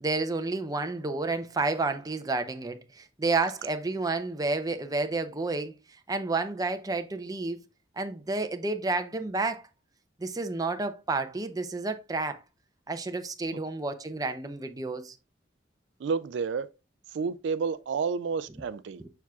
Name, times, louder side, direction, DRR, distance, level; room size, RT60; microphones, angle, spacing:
voice 1, 0.0-5.7 6.1-7.6 8.0-9.6 10.2-12.4 12.9-15.2 19.0-19.1, right 3 dB, 20° right, 0.6 m, -30 dB
voice 2, 16.0-16.7 17.1-19.0, right 5 dB, 65° right, 0.3 m, -30 dB
7.1 x 5.7 x 2.3 m
head